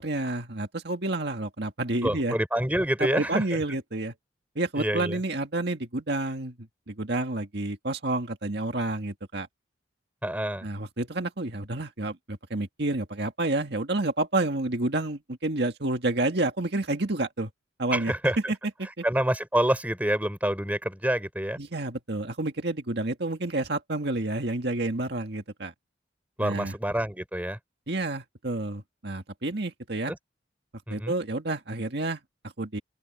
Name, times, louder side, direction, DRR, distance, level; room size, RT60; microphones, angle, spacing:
voice 1, 0.0-2.4 3.0-4.1 4.6-9.5 10.6-17.5 17.8-18.1 19.0-19.1 21.6-25.7 26.4-26.7 27.9-30.1 30.9-32.8, right 2 dB, 60° right, 2.0 m, -29 dB
voice 2, 2.0-3.4 4.8-5.2 10.2-10.7 17.9-18.5 19.0-21.6 26.4-27.6 30.1-30.2 30.9-31.1, right 1 dB, 10° right, 3.4 m, -27 dB
open air
head